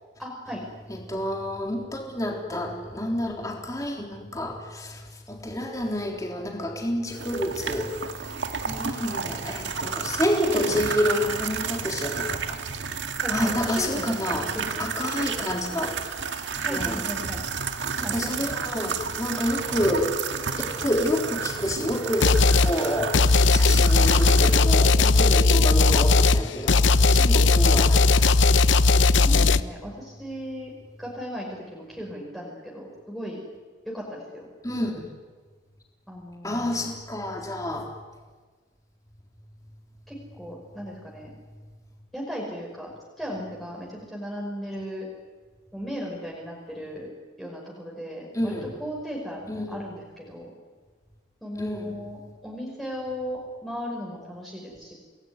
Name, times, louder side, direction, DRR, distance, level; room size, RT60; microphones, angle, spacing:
voice 1, 0.2-0.6 10.4-10.9 13.2-14.8 16.6-17.4 18.0-18.6 29.2-30.7 31.0-33.4 33.8-34.5 36.1-36.8 40.1-41.3 42.1-42.9 43.2-45.1 45.7-47.1 47.4-50.5 51.4-54.9, equal, ahead, -3 dB, 5.2 m, -36 dB
voice 2, 0.9-8.3 8.6-12.6 13.3-14.5 14.8-16.0 16.6-17.0 18.0-20.2 20.7-23.2 23.5-28.4 34.6-35.1 36.4-37.9 48.3-48.7 49.5-49.8 51.6-52.0, left 1 dB, 20° left, 1 dB, 3.6 m, -29 dB
sound 1, 7.1-24.6, right 5 dB, 70° right, 2.0 m, -31 dB
sound 2, 22.2-22.7 23.1-29.6, left 3 dB, 75° left, 0.8 m, -18 dB
27.5 x 20.0 x 9.7 m, 1.4 s
head